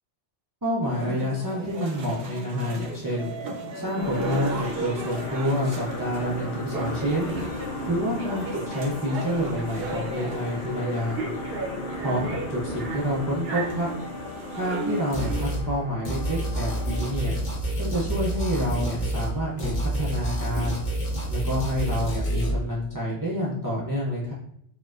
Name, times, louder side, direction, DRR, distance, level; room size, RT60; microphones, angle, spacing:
voice 1, 0.6-3.3 3.7-7.4 7.9-11.3 11.9-13.9 14.5-17.4 17.8-20.8 21.3-24.3, equal, 30° right, -7 dB, 0.3 m, -28 dB
sound 1, 0.8-15.4, right 2 dB, 60° right, 0.8 m, -35 dB
sound 2, 4.0-17.3, left 2 dB, 60° left, 0.7 m, -36 dB
sound 3, 15.1-15.6 16.0-19.3 19.6-22.5, right 1 dB, 85° left, 1.5 m, -28 dB
4.5 x 2.2 x 2.4 m, 0.72 s
omnidirectional pair, 1.2 m